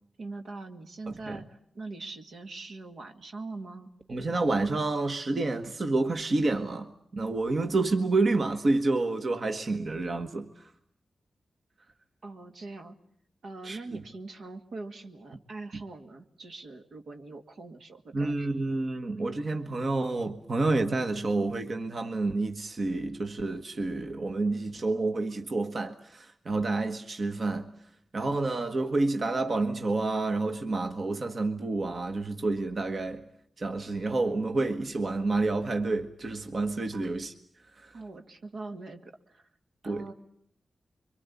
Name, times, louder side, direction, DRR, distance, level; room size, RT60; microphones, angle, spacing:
voice 1, 0.2-3.9 12.2-13.0 13.4-18.7 36.9-37.1 37.9-39.5 39.8-40.1, right 3 dB, 80° right, 2.1 m, -42 dB
voice 2, 1.1-1.4 4.1-10.7 13.6-14.0 18.1-27.7 28.1-33.2 33.6-37.3 37.8-38.0 39.8-40.1, right 3 dB, 55° right, 1.4 m, -29 dB
26.0 x 24.0 x 8.4 m
cardioid pair, 75°, 0 cm